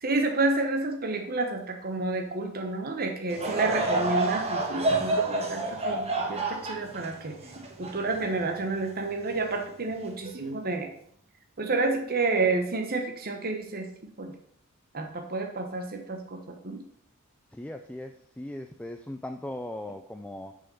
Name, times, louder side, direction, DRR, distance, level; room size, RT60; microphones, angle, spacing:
voice 1, 0.0-7.3 7.8-10.9 11.6-13.9 14.2-14.3 14.9-16.8, right 3 dB, 45° right, 4 dB, 1.2 m, -30 dB
Laughter / Crowd, 3.3-8.8 9.3-9.4 10.2-10.5, right 2 dB, 30° right, 1.5 m, -29 dB
voice 2, 17.5-20.6, left 1 dB, 5° left, 5 dB, 0.4 m, -39 dB
6.9 x 5.6 x 7.0 m, 0.66 s
head